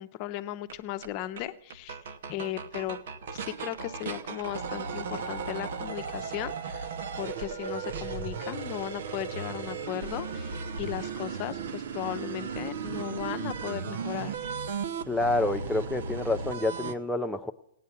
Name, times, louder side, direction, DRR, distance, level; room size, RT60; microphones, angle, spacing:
voice 1, 0.0-2.0 2.3-3.0 3.3-6.9 7.2-14.3, left 13 dB, 40° left, 10 dB, 0.8 m, -36 dB
sound 1, 0.7-0.8 1.0-1.1 1.4-1.5 1.7-16.9, right 6 dB, 65° right, 0.9 m, -36 dB
voice 2, 15.1-17.5, left 2 dB, ahead, 2 dB, 0.5 m, -28 dB
16.0 x 9.5 x 6.8 m, 0.73 s
hypercardioid pair, 135°, 0 cm